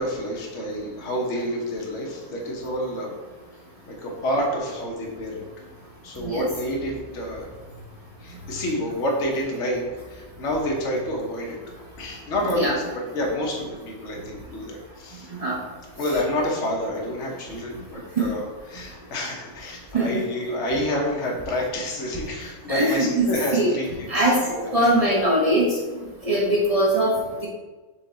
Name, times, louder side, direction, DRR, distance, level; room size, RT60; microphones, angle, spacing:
voice 1, 0.0-3.2 3.9-5.4 6.0-7.5 8.2-11.6 12.0-15.3 16.0-24.9 26.3-26.4, equal, 55° left, -2 dB, 1.2 m, -28 dB
voice 2, 22.7-23.7 24.1-24.4 24.7-25.8 26.2-27.5, right 1 dB, 45° right, -5 dB, 0.4 m, -21 dB
4.4 x 3.1 x 3.8 m, 1.3 s
omnidirectional pair, 1.6 m